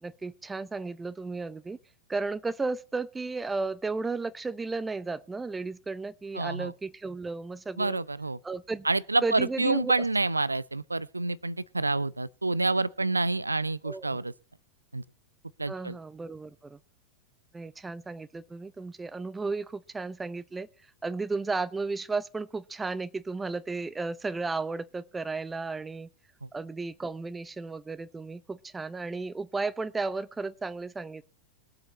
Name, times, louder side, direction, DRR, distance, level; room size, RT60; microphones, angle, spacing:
voice 1, 0.0-1.8 2.1-8.0 8.4-8.9 9.2-9.9 13.8-14.2 15.7-16.8 17.5-20.7 21.0-26.1 26.5-31.3, right 3 dB, 10° right, 0.7 m, -34 dB
voice 2, 6.4-6.7 7.8-8.4 8.9-14.3 14.9-15.0 15.6-16.0, right 2 dB, 80° right, 0.5 m, -28 dB
21.5 x 8.0 x 4.2 m
figure-of-eight pair, 90°, 0 cm